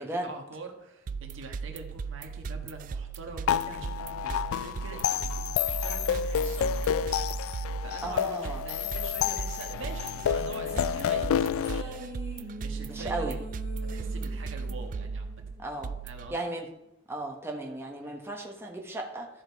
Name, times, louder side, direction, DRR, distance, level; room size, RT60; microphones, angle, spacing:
voice 1, 0.0-7.1 7.4-13.4 13.9-15.4 16.0-16.5 18.0-18.2, right 3 dB, 65° right, 3 dB, 1.5 m, -45 dB
sound 1, 1.1-16.3, right 4 dB, 40° right, 0.3 m, -37 dB
sound 2, 3.5-11.8, left 9 dB, 80° left, 0.3 m, -30 dB
voice 2, 8.0-8.6 12.9-13.4 15.6-15.9 16.3-16.7 17.1-19.3, right 2 dB, 10° right, 0 dB, 1.2 m, -35 dB
sound 3, 9.9-16.3, equal, 30° left, 3.2 m, -44 dB
13.5 x 5.1 x 4.7 m, 0.84 s
head